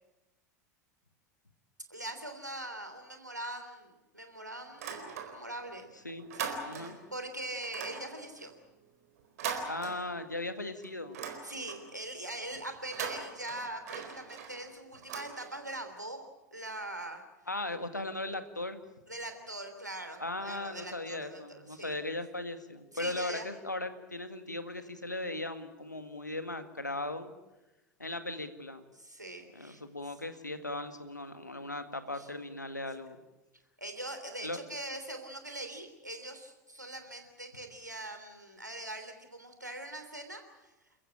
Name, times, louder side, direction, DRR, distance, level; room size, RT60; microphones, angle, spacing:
voice 1, 1.9-5.9 6.3-8.5 11.4-17.2 19.1-21.9 22.9-23.5 29.0-29.8 32.1-32.3 33.8-40.7, right 1 dB, 85° right, 6 dB, 3.3 m, -42 dB
sound 1, 4.7-5.7 6.0-7.1 7.6-10.5 10.8-12.0 12.8-15.9, right 6 dB, 60° right, 4.2 m, -41 dB
voice 2, 6.7-7.0 9.7-11.2 17.5-18.8 20.2-27.3 28.0-28.8 29.5-33.2 34.4-34.6, left 2 dB, 85° left, 9 dB, 1.8 m, -38 dB
29.5 x 15.0 x 8.8 m, 1.0 s
figure-of-eight pair, 80°, 9 cm